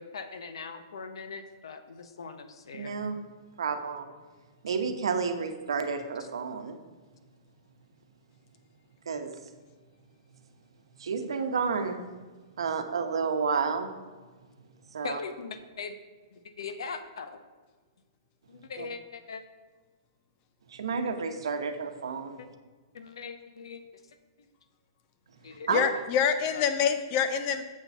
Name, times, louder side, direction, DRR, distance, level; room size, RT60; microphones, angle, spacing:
voice 1, 0.0-2.9 15.0-16.0 16.3-17.4 18.5-19.4 22.4-22.5 22.9-23.8 25.4-25.7 26.5-26.6, left 5 dB, 85° left, 9 dB, 0.8 m, -40 dB
voice 2, 2.8-3.2 3.6-4.1 4.6-6.8 9.1-9.4 11.0-12.0 12.6-13.9 14.9-15.2 18.8-18.9 20.7-22.4 25.7-25.9, right 5 dB, 90° right, 6 dB, 0.9 m, -30 dB
voice 3, 25.7-27.6, left 7 dB, 35° left, 9 dB, 0.6 m, -26 dB
7.4 x 4.1 x 5.9 m, 1.3 s
hypercardioid pair, 155°, 3 cm